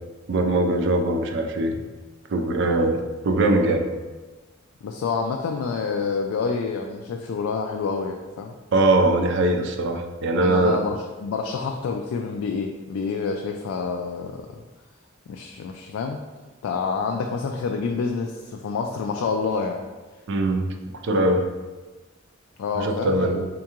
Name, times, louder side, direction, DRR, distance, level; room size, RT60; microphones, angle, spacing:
voice 1, 0.3-1.7 2.3-3.9 8.7-10.8 20.3-20.7 21.0-21.4 22.8-23.4, right 2 dB, 60° right, 4 dB, 0.4 m, -21 dB
voice 2, 4.8-8.6 10.4-14.6 15.3-16.2 16.6-19.8 22.6-23.5, left 5 dB, 90° left, 2 dB, 0.3 m, -28 dB
4.4 x 2.9 x 2.4 m, 1.2 s
head